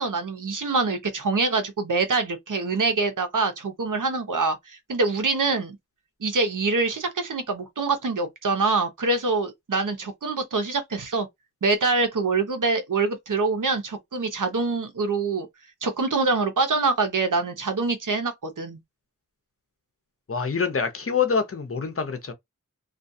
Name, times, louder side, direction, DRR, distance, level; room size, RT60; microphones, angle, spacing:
voice 1, 0.0-5.8 6.2-11.3 11.6-15.5 15.8-18.8, right 3 dB, 70° right, 0.8 m, -25 dB
voice 2, 20.3-22.3, left 5 dB, 45° left, 0.7 m, -25 dB
2.4 x 2.3 x 2.6 m
wide cardioid pair, 50°, 32 cm